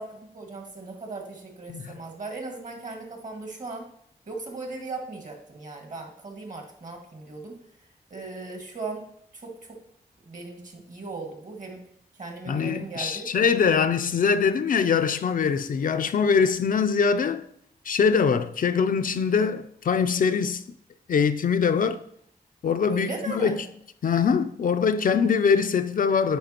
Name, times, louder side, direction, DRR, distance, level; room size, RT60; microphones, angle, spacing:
voice 1, 0.0-3.9 4.3-7.6 8.1-9.1 9.3-9.8 10.3-11.8 12.2-13.3 22.9-23.6, right 3 dB, 50° right, 1.7 m, -37 dB
voice 2, 12.5-17.4 17.9-20.6 21.1-22.0 22.6-23.7 24.0-26.4, left 6 dB, 60° left, 0.4 m, -23 dB
9.2 x 4.6 x 2.9 m
cardioid pair, 55°, 16 cm